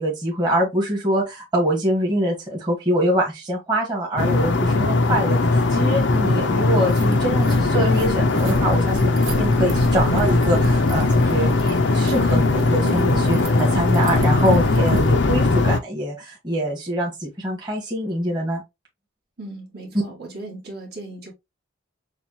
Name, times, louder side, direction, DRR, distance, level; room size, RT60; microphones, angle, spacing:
voice 1, 0.0-18.6, equal, 20° right, 1.6 m, -24 dB
sound 1, 4.2-15.8, left 2 dB, 60° left, 0.6 m, -19 dB
sound 2, 6.3-6.4 6.7-15.1, right 1 dB, 80° right, 1.0 m, -32 dB
voice 2, 19.4-21.3, right 2 dB, 50° right, 2.0 m, -37 dB
7.1 x 2.4 x 2.8 m
head